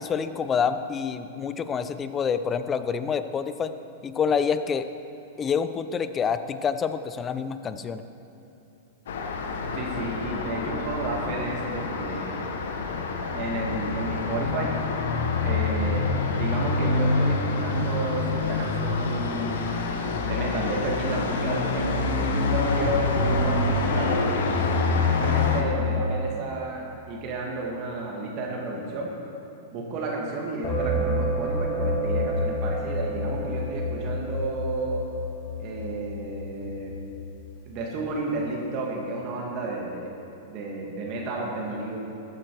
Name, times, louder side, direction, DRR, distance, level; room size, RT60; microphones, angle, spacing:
voice 1, 0.0-3.7 4.0-4.9 5.4-8.0, left 6 dB, 25° left, 12 dB, 0.6 m, -27 dB
Traffic noise roadway noise, 9.1-25.6, left 3 dB, 70° left, 1.2 m, -26 dB
voice 2, 9.7-12.6 13.3-14.7 15.4-19.8 20.3-24.5 24.9-29.1 29.7-35.0 35.6-36.9 37.7-40.1 40.5-42.0, right 2 dB, 45° right, -1 dB, 1.9 m, -31 dB
sound 1, 30.6-37.2, equal, 50° left, 2.3 m, -29 dB
14.0 x 8.9 x 4.7 m, 2.9 s
hypercardioid pair, 110°, 0 cm